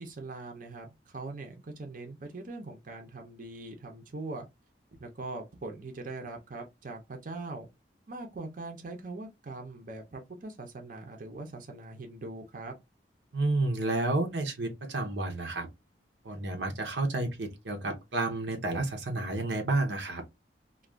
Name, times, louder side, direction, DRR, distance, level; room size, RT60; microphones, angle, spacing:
voice 1, 0.0-4.5 5.0-7.7 8.1-12.7, right 2 dB, 50° right, 0.6 m, -41 dB
voice 2, 13.3-15.7 16.2-20.2, right 2 dB, 90° right, 0.8 m, -30 dB
2.4 x 2.3 x 3.3 m
head